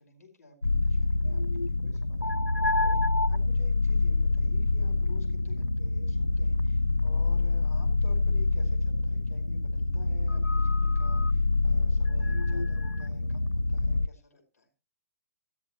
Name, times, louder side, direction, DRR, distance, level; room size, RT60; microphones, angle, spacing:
voice 1, 0.0-14.7, left 3 dB, 65° left, 5 dB, 5.2 m, -53 dB
sound 1, 0.6-14.1, left 3 dB, 90° left, 0.5 m, -26 dB
15.0 x 13.0 x 3.1 m, 0.34 s
figure-of-eight pair, 115°, 9 cm